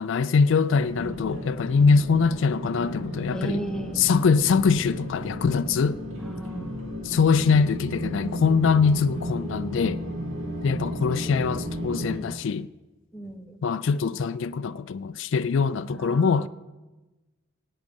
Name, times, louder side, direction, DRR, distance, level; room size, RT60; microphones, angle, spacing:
voice 1, 0.0-3.6 4.0-6.0 7.0-10.0 10.6-12.7 13.6-16.5, left 5 dB, 60° left, 0.4 m, -23 dB
sound 1, 0.7-12.2, equal, 75° right, 2.7 m, -34 dB
voice 2, 3.3-4.0 6.2-6.8 13.1-13.6 15.9-16.5, right 1 dB, 5° left, 0.9 m, -36 dB
18.0 x 9.4 x 5.3 m
head